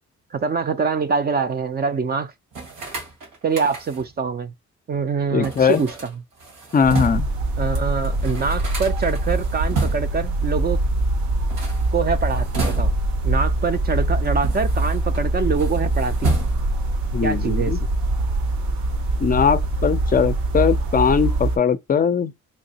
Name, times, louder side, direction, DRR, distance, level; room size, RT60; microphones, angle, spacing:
voice 1, 0.3-2.3 3.4-4.5 4.9-6.1 7.6-10.8 11.9-12.9 13.2-16.3 17.2-17.7, right 5 dB, 35° right, 0.4 m, -24 dB
sound 1, 2.5-4.2 5.4-7.4 7.8-7.9 8.0-10.3 11.4-13.2 13.9-15.2 15.5-16.9, right 3 dB, 90° right, 1.8 m, -30 dB
voice 2, 5.3-5.8 6.7-7.3 17.1-17.8 19.2-22.3, left 6 dB, 30° left, 0.4 m, -20 dB
sound 2, 6.8-21.6, right 2 dB, 70° right, 0.9 m, -23 dB
3.2 x 2.8 x 2.7 m
cardioid pair, 90°, 30 cm